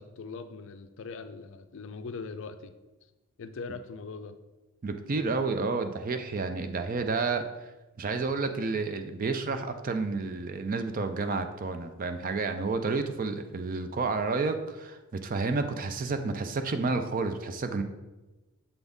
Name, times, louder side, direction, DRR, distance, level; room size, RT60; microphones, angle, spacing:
voice 1, 0.0-2.7 3.4-4.4, left 4 dB, 60° left, 10 dB, 0.4 m, -41 dB
voice 2, 4.8-7.5 8.0-17.8, right 4 dB, 40° right, 8 dB, 0.4 m, -30 dB
7.0 x 3.9 x 3.5 m, 1.1 s
head